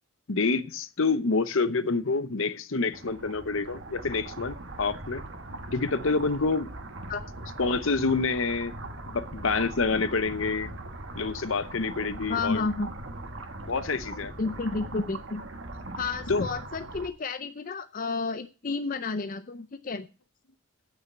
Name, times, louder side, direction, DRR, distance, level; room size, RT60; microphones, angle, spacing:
voice 1, 0.3-5.2 5.7-6.7 7.6-8.7 9.1-10.7 11.1-12.7 13.7-14.3 16.3-16.5, left 4 dB, 65° left, 0.8 m, -27 dB
sound 1, 2.9-17.1, right 2 dB, 55° right, 1.4 m, -40 dB
voice 2, 12.3-12.9 14.4-15.4 16.0-20.1, left 4 dB, 40° left, 0.5 m, -31 dB
8.5 x 6.4 x 8.2 m
head